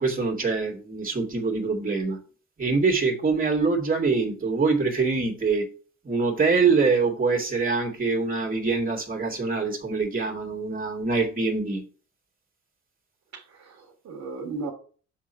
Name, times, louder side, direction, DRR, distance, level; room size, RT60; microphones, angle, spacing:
voice 1, 0.0-2.2 2.6-5.7 6.0-11.8, right 4 dB, 30° right, 2 dB, 2.4 m, -24 dB
voice 2, 13.3-14.7, right 3 dB, 65° right, 1 dB, 1.8 m, -36 dB
7.0 x 3.7 x 5.7 m, 0.39 s
cardioid pair, 90°, 30 cm